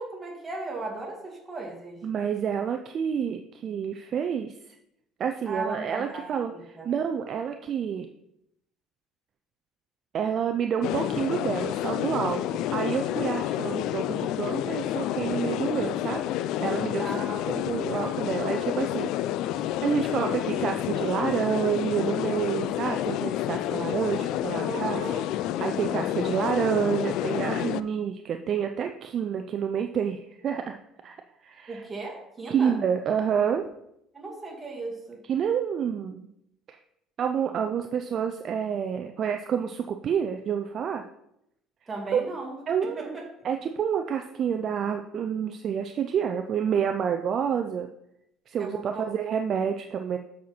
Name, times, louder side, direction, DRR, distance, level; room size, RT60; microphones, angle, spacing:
voice 1, 0.0-2.0 5.5-6.9 17.0-17.7 24.6-25.2 31.7-32.8 34.1-35.2 41.9-42.6 43.0-43.2 48.6-49.1, right 3 dB, 15° right, -2 dB, 2.2 m, -36 dB
voice 2, 2.0-4.5 5.2-8.1 10.1-12.4 12.7-16.2 16.6-17.1 17.5-19.1 19.5-25.0 25.6-30.8 31.0-31.8 32.5-33.7 35.3-36.3 36.7-36.8 37.2-41.1 42.1-42.2 42.7-43.2 43.4-47.9 48.5-50.2, right 7 dB, 40° right, 5 dB, 0.4 m, -28 dB
sound 1, 10.8-27.8, left 12 dB, 65° left, 0.3 m, -29 dB
7.4 x 5.6 x 4.4 m, 0.80 s
cardioid pair, 140°, 0 cm